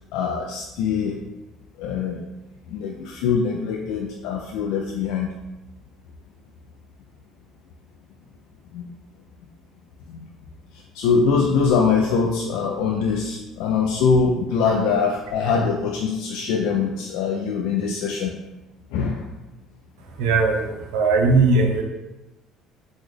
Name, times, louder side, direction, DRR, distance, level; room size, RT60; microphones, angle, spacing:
voice 1, 0.1-1.2 1.8-2.2 2.7-5.3 8.7-8.9 11.0-18.3 18.9-19.2, left 5 dB, 80° left, 0 dB, 0.3 m, -23 dB
voice 2, 20.2-21.8, right 3 dB, 80° right, 1 dB, 0.6 m, -19 dB
3.9 x 2.0 x 3.1 m, 0.97 s
supercardioid pair, 85°, 0 cm